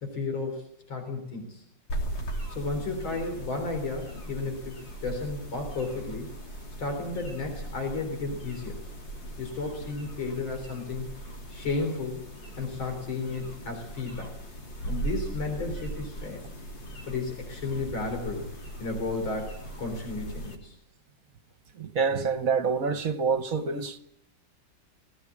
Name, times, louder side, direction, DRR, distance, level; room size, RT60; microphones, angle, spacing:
voice 1, 0.0-0.6 0.9-1.6 2.5-6.3 6.8-8.8 9.4-11.1 11.5-12.2 12.6-14.3 14.8-16.4 17.1-18.5 18.8-20.7, left 3 dB, 85° left, 4.5 m, -33 dB
sound 1, 1.9-20.5, right 1 dB, 70° left, 3.9 m, -39 dB
voice 2, 21.7-24.0, right 5 dB, 50° right, 1.3 m, -27 dB
20.5 x 16.5 x 8.5 m
omnidirectional pair, 2.1 m